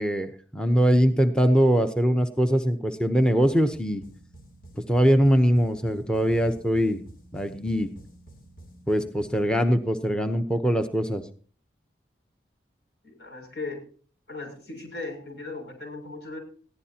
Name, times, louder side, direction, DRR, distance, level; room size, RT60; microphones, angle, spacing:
voice 1, 0.0-4.0 4.9-7.0 7.3-7.9 8.9-11.2, equal, 5° left, 8 dB, 0.8 m, -22 dB
sound 1, 3.2-9.5, right 1 dB, 50° left, 2.7 m, -49 dB
voice 2, 13.0-13.8 14.3-16.4, left 3 dB, 80° left, 2 dB, 6.8 m, -37 dB
21.0 x 15.0 x 2.9 m, 0.43 s
head